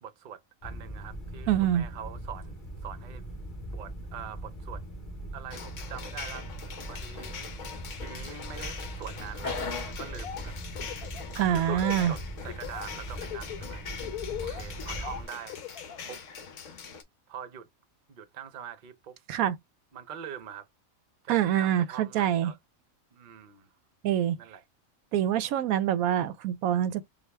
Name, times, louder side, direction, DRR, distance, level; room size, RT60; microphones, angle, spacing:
voice 1, 0.0-3.2 3.6-4.8 5.3-7.5 8.0-9.6 9.9-10.5 11.5-16.2 17.3-17.7 18.1-19.2 19.9-20.7 21.2-22.6 23.1-23.7 24.4-24.6, right 9 dB, 45° right, 0.7 m, -44 dB
sound 1, 0.6-15.3, right 1 dB, 35° left, 1.6 m, -41 dB
voice 2, 1.5-1.8 11.3-12.1 19.3-19.6 21.3-22.5 24.0-24.4 25.1-27.0, right 11 dB, 85° right, 1.0 m, -25 dB
sound 2, 5.5-17.0, left 5 dB, 65° left, 1.2 m, -41 dB
Laughter, 10.0-10.4 10.7-12.1 12.5-12.9 13.2-16.0, left 11 dB, 85° left, 1.1 m, -38 dB
4.8 x 2.3 x 3.4 m
omnidirectional pair, 1.5 m